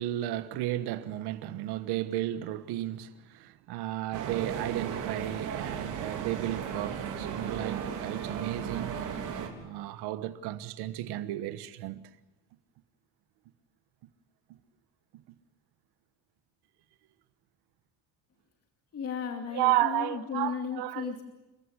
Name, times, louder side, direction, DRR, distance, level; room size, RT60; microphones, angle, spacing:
voice 1, 0.0-9.0 9.6-12.0 19.5-21.2, right 14 dB, 90° right, 1.3 m, -33 dB
sound 1, 4.1-9.5, right 7 dB, 55° right, 4.0 m, -35 dB
voice 2, 18.9-21.2, left 6 dB, 40° left, 2.5 m, -35 dB
29.5 x 14.5 x 9.7 m
cardioid pair, 150°, 38 cm